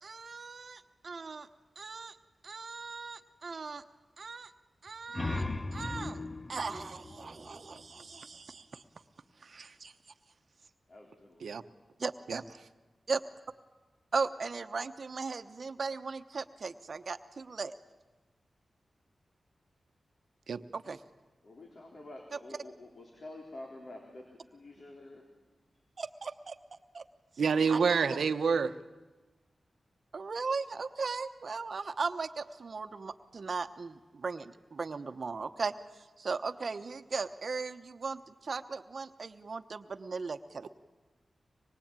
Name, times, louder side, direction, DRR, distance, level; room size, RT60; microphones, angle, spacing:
voice 1, 0.0-1.5 1.8-2.2 2.4-3.8 4.2-4.5 4.8-5.4 5.7-6.2 6.5-8.8 9.4-9.9 12.0-12.4 13.1-13.2 14.1-17.7 20.7-21.0 26.0-26.6 26.9-27.0 27.7-28.0 30.1-35.7 36.2-40.7, right 4 dB, 60° right, 9 dB, 1.0 m, -37 dB
sound 1, 4.9-8.3, left 2 dB, 30° left, 0.7 m, -38 dB
voice 2, 10.9-11.5 21.4-25.3 27.6-28.5, left 1 dB, 60° left, 1 dB, 3.9 m, -48 dB
voice 3, 27.4-28.7 40.6-40.7, right 5 dB, 85° right, 11 dB, 0.9 m, -27 dB
25.0 x 22.0 x 8.9 m, 1.2 s
wide cardioid pair, 80°, 0 cm